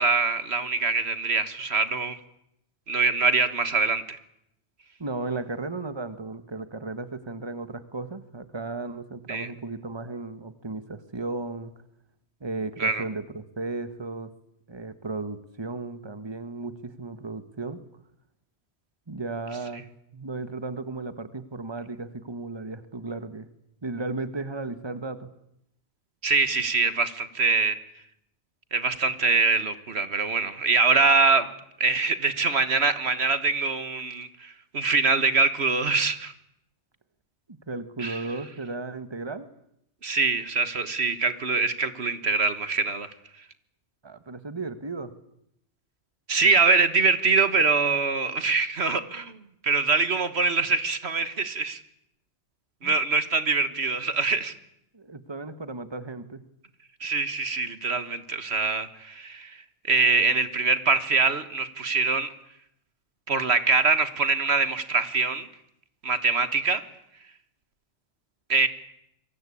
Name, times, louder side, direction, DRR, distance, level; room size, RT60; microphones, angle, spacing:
voice 1, 0.0-2.2 2.9-4.2 9.3-9.5 12.8-13.0 26.2-27.8 28.7-31.5 31.8-36.3 38.0-38.2 40.0-43.1 46.3-49.4 49.6-51.8 52.8-54.5 57.0-59.6 59.8-62.3 63.3-65.5 66.0-66.8 68.5-68.7, right 4 dB, 70° right, 12 dB, 1.8 m, -24 dB
voice 2, 5.0-11.7 12.4-14.3 14.7-17.8 19.1-19.9 20.1-23.5 23.8-25.3 37.7-39.5 44.0-45.1 52.8-53.0 53.7-53.9 54.9-56.4, right 3 dB, 25° right, 11 dB, 1.6 m, -35 dB
26.5 x 23.5 x 8.6 m, 0.77 s
omnidirectional pair, 1.1 m